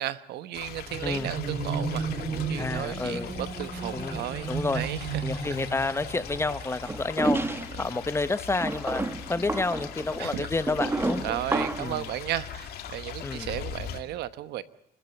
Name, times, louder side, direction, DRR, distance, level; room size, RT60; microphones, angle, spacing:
voice 1, 0.0-4.5 4.7-5.1 10.2-10.5 11.2-14.6, right 13 dB, 80° right, 1.1 m, -34 dB
sound 1, 0.5-14.0, left 9 dB, 70° left, 2.4 m, -40 dB
sound 2, 0.9-7.7, right 4 dB, 30° right, 4.5 m, -34 dB
voice 2, 1.0-1.3 2.6-3.3 3.9-4.8 5.2-9.0 9.3-11.3 11.8-12.1 13.2-13.5, left 3 dB, 15° left, 0.9 m, -30 dB
sound 3, 6.9-7.9 8.5-12.0, right 2 dB, 15° right, 1.3 m, -30 dB
28.0 x 13.5 x 8.0 m
cardioid pair, 110°, 17 cm